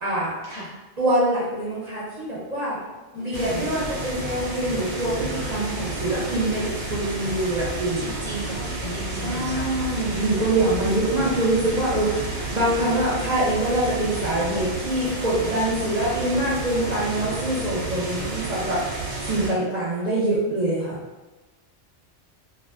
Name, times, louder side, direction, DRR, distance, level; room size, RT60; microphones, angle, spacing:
voice 1, 0.0-0.3 1.0-2.8 3.1-8.1 9.1-21.0, right 1 dB, 45° right, -8 dB, 0.6 m, -25 dB
voice 2, 3.1-3.7 8.0-9.9 16.0-16.1 18.3-18.5, left 2 dB, 45° left, -9 dB, 0.5 m, -36 dB
sound 1, 3.3-19.5, right 2 dB, 85° right, 0.9 m, -31 dB
2.5 x 2.2 x 2.3 m, 1.1 s
omnidirectional pair, 1.2 m